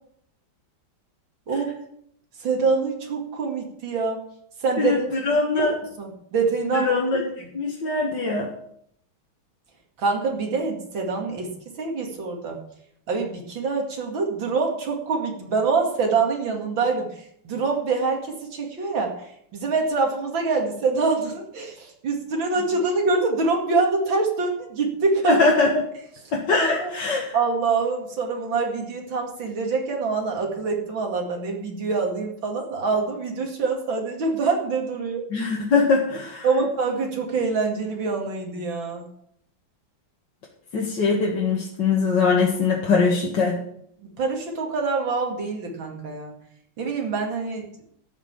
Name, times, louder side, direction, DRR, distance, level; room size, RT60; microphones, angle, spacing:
voice 1, 2.4-4.2 4.6-5.1 5.5-5.7 6.0-6.9 10.0-11.5 11.8-12.6 13.1-17.1 17.4-19.2 19.5-25.4 26.6-26.9 27.3-35.2 36.4-39.1 44.0-46.3 46.8-47.7, right 4 dB, 65° right, 1 dB, 3.1 m, -25 dB
voice 2, 4.8-5.8 6.7-7.2 7.5-8.5 25.2-25.8 26.3-27.4 35.3-36.5 40.7-43.6, left 4 dB, 60° left, -2 dB, 2.2 m, -22 dB
12.5 x 6.0 x 8.9 m, 0.71 s
omnidirectional pair, 2.2 m